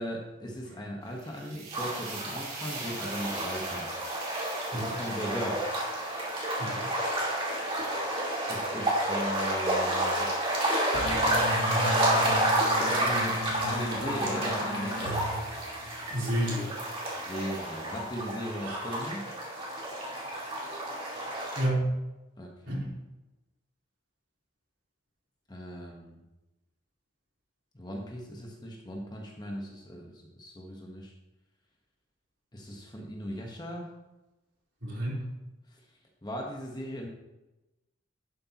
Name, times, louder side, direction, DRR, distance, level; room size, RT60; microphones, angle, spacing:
voice 1, 0.0-3.9 4.7-5.7 8.5-10.3 12.8-15.3 17.1-19.3 22.4-22.8 25.5-26.2 27.7-31.1 32.5-33.9 35.7-35.8 36.2-37.1, equal, 20° left, 0 dB, 1.2 m, -38 dB
sound 1, 1.0-8.2 8.8-12.7 13.6-13.9 14.3-18.5, right 3 dB, 90° right, 3.7 m, -46 dB
sound 2, 1.7-21.7, right 1 dB, 25° right, 2.4 m, -30 dB
sound 3, 10.9-16.3, left 1 dB, 75° left, 1.2 m, -35 dB
voice 2, 16.1-16.7 18.6-19.0 21.5-21.9 22.7-22.9 34.8-35.2, right 1 dB, 60° right, -5 dB, 3.8 m, -30 dB
11.5 x 9.6 x 3.0 m, 1.0 s
head